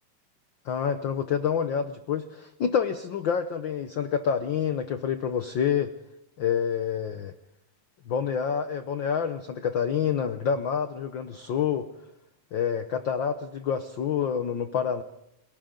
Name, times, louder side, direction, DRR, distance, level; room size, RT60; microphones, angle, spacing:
voice 1, 0.6-5.9 6.4-7.3 8.1-11.9 12.5-15.0, left 7 dB, 90° left, 9 dB, 1.0 m, -27 dB
30.0 x 22.5 x 3.8 m, 0.81 s
omnidirectional pair, 3.3 m